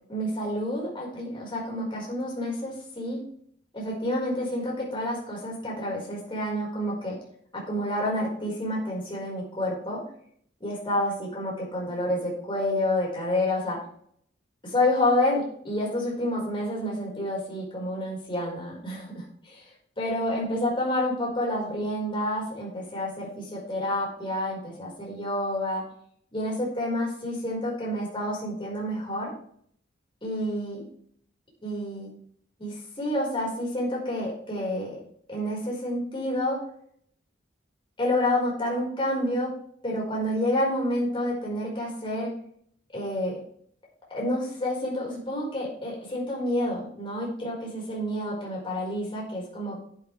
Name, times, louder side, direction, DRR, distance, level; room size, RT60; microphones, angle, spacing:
voice 1, 0.1-3.2 3.7-7.2 7.7-10.0 10.6-13.8 14.6-19.6 20.0-25.8 26.3-29.3 30.2-30.8 31.6-32.1 32.6-35.0 35.3-36.6 38.0-39.5 39.8-42.3 42.9-43.4 44.1-49.8, left 1 dB, 25° left, -3 dB, 4.9 m, -29 dB
11.5 x 9.1 x 3.4 m, 0.62 s
head